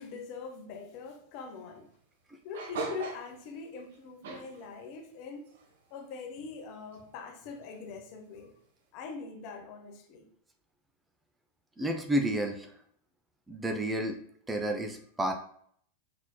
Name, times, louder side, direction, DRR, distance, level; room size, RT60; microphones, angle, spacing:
voice 1, 0.0-1.9 2.4-5.5 5.9-8.5 8.9-10.3, left 4 dB, 45° left, 0.8 m, -43 dB
sound 1, 2.5-3.5 3.8-4.0 4.2-4.8 5.5-5.9 6.4-6.5 6.9-7.0 7.6-7.8, right 3 dB, 55° right, 0.8 m, -40 dB
voice 2, 11.8-12.7 13.5-14.2 14.5-15.3, right 1 dB, 10° right, 0.6 m, -30 dB
5.6 x 4.1 x 2.3 m
figure-of-eight pair, 90°, 0 cm